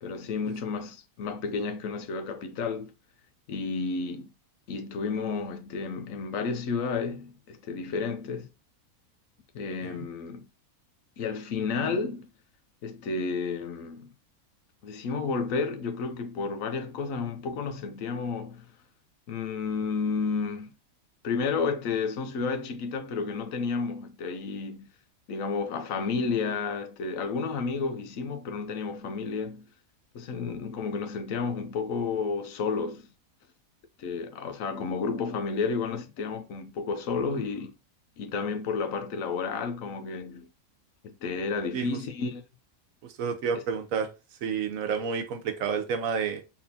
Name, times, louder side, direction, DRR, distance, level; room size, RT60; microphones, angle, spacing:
voice 1, 0.0-2.9 3.5-4.3 4.7-8.5 9.5-10.4 11.2-12.3 12.8-14.1 14.8-18.7 19.3-20.8 21.2-24.9 25.3-29.7 30.1-33.1 34.0-37.7 38.2-40.5 41.0-42.4, left 4 dB, 70° left, 1.0 m, -31 dB
voice 2, 43.0-44.1 44.4-46.4, right 6 dB, 70° right, 1.1 m, -30 dB
4.2 x 3.6 x 2.7 m
omnidirectional pair, 1.6 m